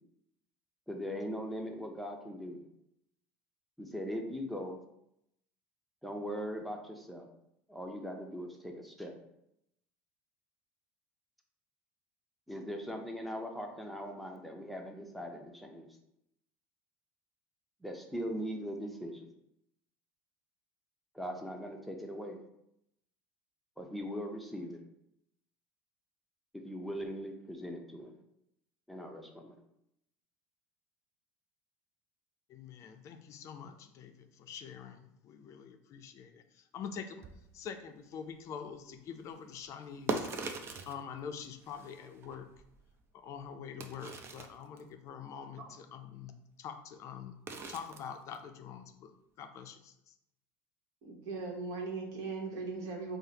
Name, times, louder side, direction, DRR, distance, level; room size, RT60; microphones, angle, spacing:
voice 1, 0.9-2.6 3.8-4.8 6.0-7.3 7.7-9.1 12.5-15.9 17.8-19.3 21.1-22.4 23.8-24.8 26.5-28.2 28.9-29.5, equal, ahead, 2 dB, 0.6 m, -40 dB
voice 2, 32.5-36.4 36.7-37.2 37.5-40.3 40.9-42.5 43.1-47.4 47.7-49.1 49.4-49.9, left 7 dB, 50° left, 7 dB, 0.4 m, -45 dB
sound 1, 37.2-37.5 39.6-41.0 41.4-43.0 43.4-43.5 43.8-44.8 47.5-48.1 48.3-48.4, right 4 dB, 40° right, 0.5 m, -40 dB
voice 3, 51.0-53.2, right 4 dB, 60° right, 1 dB, 1.0 m, -39 dB
4.7 x 2.0 x 2.8 m, 0.80 s
hypercardioid pair, 90°, 7 cm